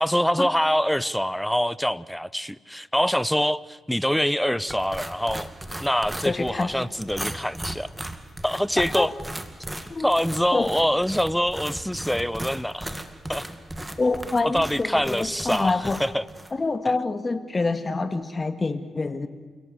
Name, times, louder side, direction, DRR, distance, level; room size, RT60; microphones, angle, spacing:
voice 1, 0.0-5.5 5.8-7.9 8.4-9.1 10.0-13.0 13.3-13.4 14.4-16.2, equal, 5° left, 19 dB, 0.8 m, -25 dB
sound 1, 4.7-16.5, right 1 dB, 10° right, 2.2 m, -37 dB
voice 2, 6.2-6.7 8.8-9.1 9.9-10.1 10.5-10.7 14.0-16.0 16.5-19.3, left 3 dB, 35° left, 10 dB, 2.1 m, -26 dB
29.0 x 17.5 x 8.1 m, 1.4 s
hypercardioid pair, 40°, 0 cm